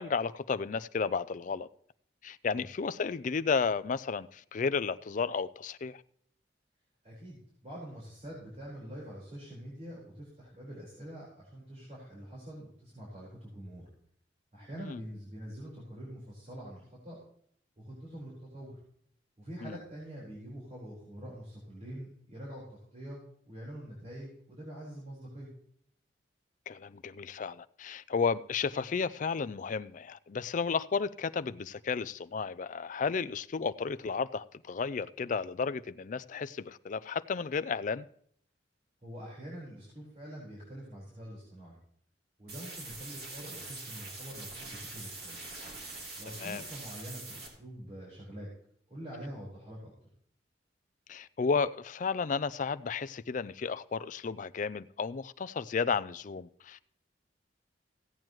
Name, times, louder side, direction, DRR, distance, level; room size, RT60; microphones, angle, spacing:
voice 1, 0.0-1.7 2.2-6.0 14.8-15.0 19.6-19.8 26.7-38.0 46.4-46.6 51.1-56.9, left 5 dB, 45° left, 0.4 m, -33 dB
voice 2, 7.0-13.9 14.5-17.2 17.8-18.7 19.4-23.2 23.5-25.5 39.0-41.8 42.4-45.4 46.2-48.5 48.9-49.9, equal, 40° right, 4.4 m, -45 dB
sound 1, 42.5-47.5, right 2 dB, 60° right, 3.1 m, -44 dB
16.5 x 9.0 x 3.1 m
head